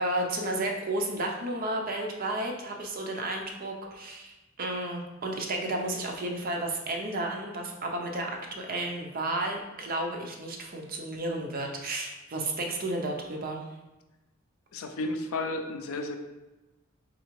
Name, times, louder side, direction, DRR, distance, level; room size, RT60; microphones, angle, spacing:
voice 1, 0.0-13.6, right 1 dB, 40° right, 1 dB, 0.6 m, -32 dB
voice 2, 14.7-16.2, left 2 dB, 70° left, 5 dB, 0.5 m, -32 dB
3.7 x 3.3 x 3.1 m, 1.1 s
head